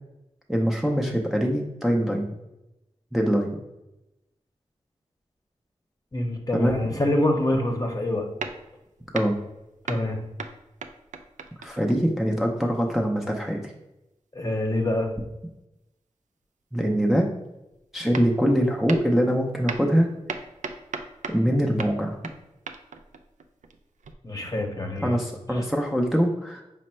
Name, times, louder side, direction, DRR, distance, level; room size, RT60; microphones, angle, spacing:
voice 1, 0.5-2.3 3.1-3.6 6.5-6.9 9.1-9.4 11.6-13.7 16.7-17.3 17.9-20.1 21.3-22.2 25.0-26.6, equal, ahead, 0 dB, 0.6 m, -23 dB
voice 2, 6.1-8.3 9.9-10.2 14.3-15.1 24.2-25.2 25.5-25.7, left 1 dB, 30° left, 2 dB, 0.8 m, -26 dB
sound 1, 7.6-7.9 8.4-9.6 9.9-12.2 17.7-17.8 18.1-18.6 18.9-19.3 19.7-21.5 21.8-24.1, right 4 dB, 75° right, 0.4 m, -38 dB
5.0 x 2.1 x 4.3 m, 0.93 s
cardioid pair, 45°, 13 cm